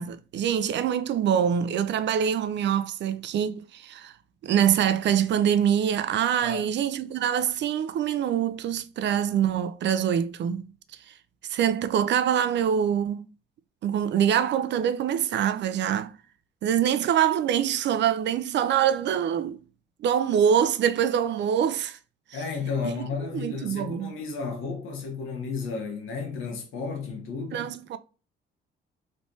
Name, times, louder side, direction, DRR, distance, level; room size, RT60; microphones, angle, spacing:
voice 1, 0.0-4.1 4.4-10.6 11.5-13.2 13.8-16.1 16.6-19.6 20.0-22.0 23.3-24.1 27.5-28.0, right 9 dB, 65° right, 0.5 m, -24 dB
voice 2, 22.3-27.7, left 5 dB, 90° left, 1.3 m, -33 dB
3.3 x 3.2 x 2.7 m
cardioid pair, 90°, 20 cm